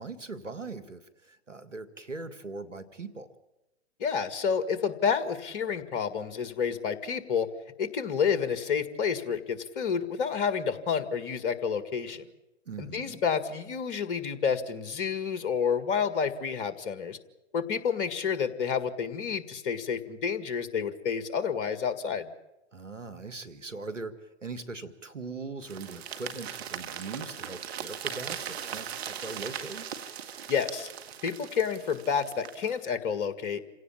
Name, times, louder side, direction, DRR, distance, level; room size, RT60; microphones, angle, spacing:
voice 1, 0.0-3.3 12.7-13.2 22.7-29.9, right 3 dB, 90° right, 10 dB, 2.0 m, -40 dB
voice 2, 4.0-7.5 7.8-12.2 12.8-17.2 17.5-22.3 30.5-30.9 31.2-33.6, left 6 dB, 45° left, 12 dB, 2.0 m, -29 dB
sound 1, 25.6-32.8, right 9 dB, 55° right, 2.0 m, -39 dB
27.0 x 17.0 x 8.7 m, 0.98 s
figure-of-eight pair, 115°, 36 cm